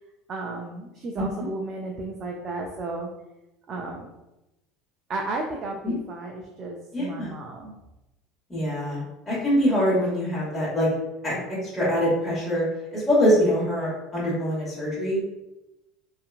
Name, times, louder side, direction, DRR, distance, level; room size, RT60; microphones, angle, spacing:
voice 1, 0.3-3.1 3.7-4.0 5.1-7.7, right 2 dB, 45° right, 1 dB, 0.4 m, -33 dB
voice 2, 6.9-7.3 8.5-10.9 11.2-11.3 11.6-12.7 12.9-15.2, equal, 15° left, -8 dB, 1.4 m, -24 dB
2.7 x 2.4 x 2.4 m, 0.95 s
hypercardioid pair, 85°, 0 cm